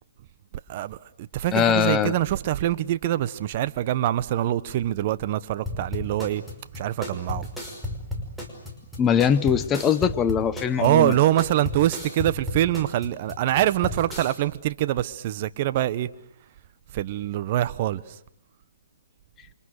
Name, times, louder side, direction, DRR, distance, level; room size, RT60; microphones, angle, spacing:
voice 1, 0.7-6.4 6.7-7.5 10.8-16.1 16.9-18.0, right 13 dB, 40° right, 1.2 m, -24 dB
voice 2, 1.5-2.1 9.0-11.1, left 8 dB, 15° left, 1.0 m, -21 dB
sound 1, 5.7-14.3, left 1 dB, ahead, 5.5 m, -34 dB
29.0 x 25.5 x 6.6 m
hypercardioid pair, 150°, 0 cm